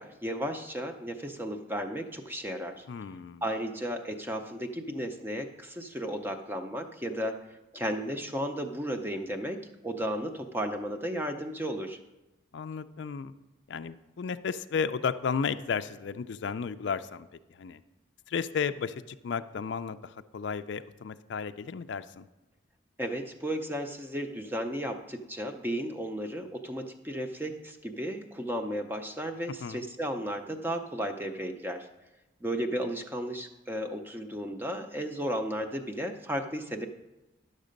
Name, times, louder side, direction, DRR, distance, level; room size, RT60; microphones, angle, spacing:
voice 1, 0.0-2.9 3.4-7.3 7.7-12.0 23.0-31.9 32.4-36.9, equal, 10° right, 5 dB, 0.5 m, -34 dB
voice 2, 2.9-3.4 12.5-13.3 13.7-17.8 18.3-22.3 29.6-29.8, left 6 dB, 65° left, 11 dB, 0.4 m, -33 dB
11.0 x 6.5 x 5.1 m, 1.0 s
head